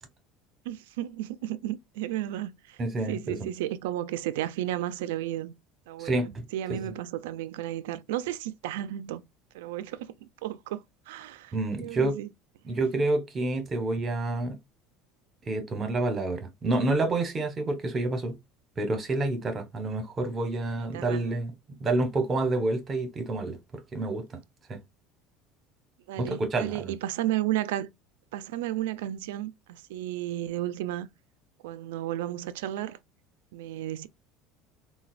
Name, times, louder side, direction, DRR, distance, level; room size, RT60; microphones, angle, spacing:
voice 1, 0.7-2.8 3.1-5.5 5.9-9.2 9.5-12.3 20.9-21.3 26.1-27.9 28.3-31.1 31.6-33.0 33.5-34.1, right 13 dB, 85° right, 0.3 m, -33 dB
voice 2, 2.8-3.4 6.0-6.4 6.7-6.8 11.5-12.2 12.6-14.6 15.5-18.4 18.8-21.5 21.8-23.6 23.9-24.2 24.7-24.8 26.2-26.9, right 2 dB, 30° right, 1.0 m, -28 dB
4.0 x 2.2 x 2.4 m
supercardioid pair, 110°, 0 cm